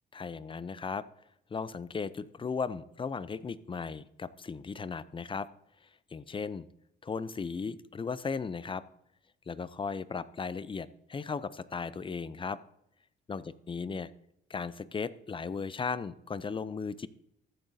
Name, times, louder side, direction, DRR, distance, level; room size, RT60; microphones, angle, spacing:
voice 1, 0.1-1.0 1.5-5.5 6.1-6.7 7.0-8.8 9.5-12.6 13.3-14.1 14.5-17.1, left 5 dB, 25° left, 17 dB, 0.5 m, -36 dB
14.5 x 8.6 x 2.7 m, 0.76 s
cardioid pair, 90°, 20 cm